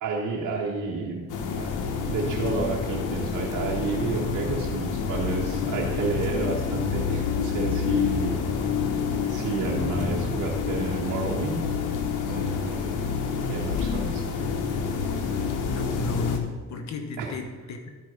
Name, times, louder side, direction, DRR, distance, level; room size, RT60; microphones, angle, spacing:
voice 1, 0.0-1.2 1.5-1.7 2.0-8.5 8.9-11.7 12.2-13.1 13.5-14.2 17.2-17.3, right 4 dB, 75° right, -3 dB, 1.4 m, -30 dB
sound 1, 1.3-16.4, left 6 dB, 85° left, 1.1 m, -28 dB
voice 2, 15.6-17.9, left 4 dB, 65° left, 5 dB, 1.3 m, -33 dB
12.0 x 4.7 x 5.4 m, 1.4 s
cardioid pair, 90°, 30 cm